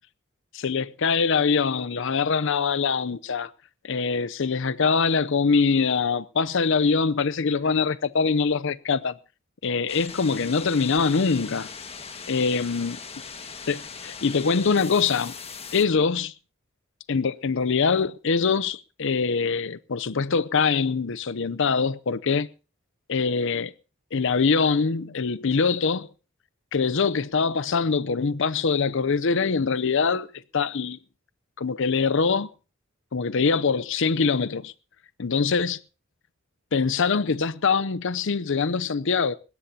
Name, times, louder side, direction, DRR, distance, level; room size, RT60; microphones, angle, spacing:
voice 1, 0.5-3.5 3.8-9.1 9.6-11.7 12.3-13.0 13.7-15.3 15.7-16.3 17.1-22.5 23.1-23.7 24.1-26.1 26.7-30.3 30.5-31.0 31.6-32.5 33.1-34.7 35.2-35.8 36.7-39.3, left 5 dB, 65° left, 0.6 m, -23 dB
sound 1, 9.9-15.8, left 5 dB, 30° left, 1.7 m, -40 dB
20.5 x 16.5 x 2.8 m
head